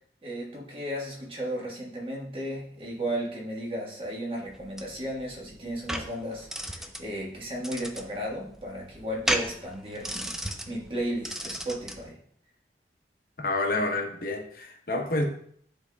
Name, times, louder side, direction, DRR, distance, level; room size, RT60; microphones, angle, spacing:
voice 1, 0.2-10.3 10.7-12.2, right 1 dB, 30° right, -3 dB, 1.5 m, -34 dB
sound 1, 4.5-12.0, equal, 5° right, 0.3 m, -35 dB
voice 2, 13.4-15.2, left 2 dB, 50° left, 2 dB, 1.0 m, -28 dB
10.5 x 3.9 x 2.3 m, 0.63 s
head